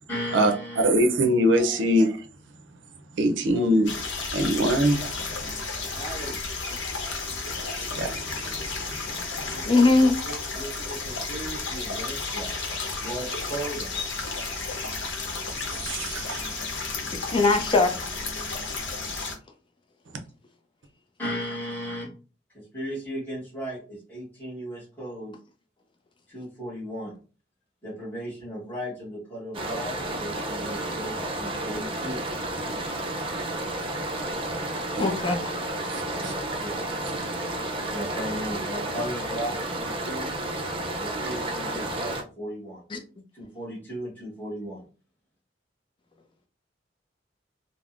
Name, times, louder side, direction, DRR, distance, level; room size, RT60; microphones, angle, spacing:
voice 1, 0.1-0.9 1.5-1.9 3.5-3.9 5.9-6.5 9.5-14.1 18.6-18.7 21.2-22.1 22.5-25.3 26.3-27.2 27.8-32.2 36.1-36.3 36.6-36.8 37.2-37.4 37.9-40.3 41.0-42.8 43.3-44.8, equal, 10° left, 1.2 m, -36 dB
voice 2, 0.8-2.2 3.2-3.9 4.3-5.0 7.9-8.3 8.9-9.0 15.8-16.4 35.0-35.1 35.9-36.3, equal, 85° right, 0.5 m, -22 dB
sound 1, 3.9-19.3, left 3 dB, 85° left, 0.8 m, -32 dB
voice 3, 9.6-10.1 17.3-18.0 35.0-35.4 42.9-43.0, left 3 dB, 25° left, 0.5 m, -20 dB
sound 2, 29.5-42.2, right 1 dB, 30° right, 0.5 m, -31 dB
3.4 x 2.0 x 2.4 m
head